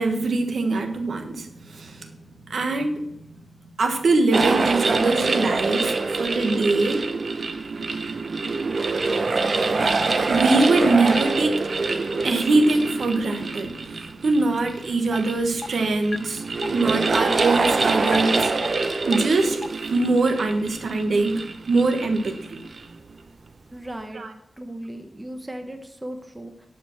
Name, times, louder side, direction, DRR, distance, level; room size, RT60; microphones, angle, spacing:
voice 1, 0.0-2.1 2.5-3.4 3.8-7.1 9.5-18.5 19.1-19.6 19.9-22.6 24.1-24.3, right 3 dB, 90° right, 5 dB, 1.4 m, -23 dB
sound 1, 4.3-22.9, right 3 dB, 55° right, 0.8 m, -25 dB
sound 2, 15.1-15.2 15.6-15.7 16.1-16.2 16.6-16.7 17.1-17.2 17.6-17.7 18.1-18.2 18.6-18.7 19.1-19.2 19.6-19.7, left 3 dB, 40° left, 0.4 m, -31 dB
voice 2, 23.7-24.3 24.6-26.7, right 1 dB, 15° right, 5 dB, 1.1 m, -36 dB
11.5 x 5.1 x 5.9 m, 0.76 s
wide cardioid pair, 130°, 0 cm